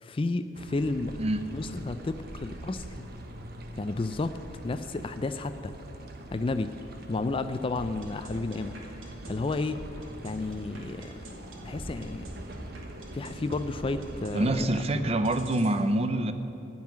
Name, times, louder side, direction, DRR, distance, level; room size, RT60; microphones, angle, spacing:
voice 1, 0.0-1.2 1.5-3.0 3.7-4.4 4.6-5.7 6.3-6.7 7.1-8.8 9.1-9.8 10.2-11.3 11.6-12.3 13.1-14.7 15.0-15.1, left 3 dB, 25° left, 10 dB, 0.3 m, -32 dB
sound 1, 0.5-14.6, right 1 dB, 50° right, 1.1 m, -44 dB
sound 2, 7.8-15.7, right 1 dB, 80° right, 2.1 m, -44 dB
voice 2, 14.3-16.3, right 1 dB, 30° right, 10 dB, 0.6 m, -26 dB
15.0 x 5.6 x 9.3 m, 3.0 s
head